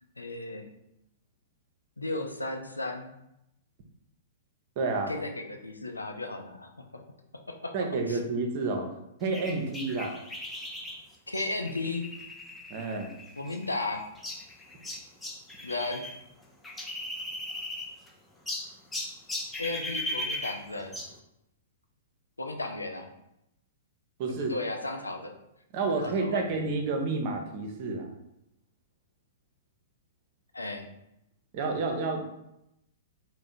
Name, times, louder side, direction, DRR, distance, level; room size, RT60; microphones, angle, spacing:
voice 1, 0.2-0.7 2.0-3.1 5.1-7.0 7.5-8.2 11.3-12.2 13.4-14.1 15.6-16.1 19.6-20.9 22.4-23.1 24.5-25.3 25.9-26.7 30.5-30.9, left 2 dB, 80° left, 4 dB, 0.4 m, -35 dB
voice 2, 4.8-5.1 7.7-8.9 9.2-10.2 12.7-13.1 24.2-24.5 25.7-28.1 31.5-32.2, right 3 dB, 40° right, 4 dB, 0.6 m, -30 dB
sound 1, 9.3-16.2 16.4-18.1 18.5-21.2, left 1 dB, 10° left, 0.5 m, -38 dB
3.5 x 2.1 x 4.1 m, 0.85 s
figure-of-eight pair, 110°, 0 cm